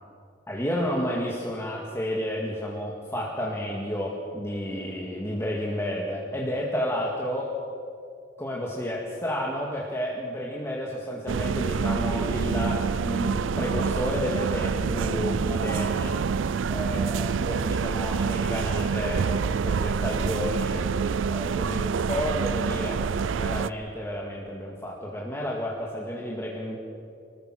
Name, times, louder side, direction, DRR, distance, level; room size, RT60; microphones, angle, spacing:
voice 1, 0.5-7.6 8.4-16.2 16.7-20.8 21.3-26.8, equal, 15° left, -3 dB, 2.0 m, -31 dB
sound 1, 11.3-23.7, right 5 dB, 90° right, 0.4 m, -27 dB
25.0 x 19.5 x 6.3 m, 2.5 s
head